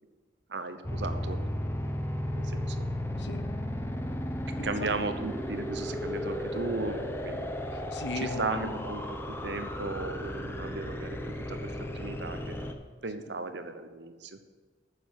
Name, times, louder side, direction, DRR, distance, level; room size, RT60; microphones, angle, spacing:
voice 1, 0.5-1.4 2.5-2.8 4.6-7.5 8.1-9.0 9.3-12.6 13.0-14.4, right 3 dB, 70° right, 8 dB, 0.9 m, -36 dB
sound 1, 0.8-12.7, equal, 15° left, 0.7 m, -34 dB
voice 2, 4.6-5.0 7.7-8.8, left 3 dB, 70° left, 9 dB, 0.9 m, -37 dB
9.4 x 6.9 x 7.4 m, 1.4 s
head